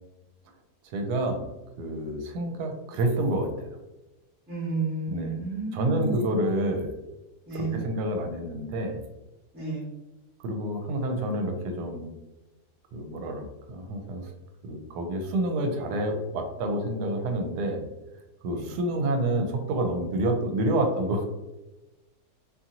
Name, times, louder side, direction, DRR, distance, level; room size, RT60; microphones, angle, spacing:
voice 1, 0.8-1.4 1.8-3.7 5.1-5.4 5.7-6.9 7.5-9.0 10.4-12.1 12.9-14.3 14.6-17.8 18.4-21.3, right 1 dB, 75° right, 4 dB, 1.1 m, -28 dB
voice 2, 4.5-6.4 7.5-7.8 9.5-9.8 18.5-18.7, right 3 dB, 10° right, -8 dB, 0.7 m, -32 dB
2.8 x 2.5 x 2.7 m, 1.0 s
omnidirectional pair, 1.8 m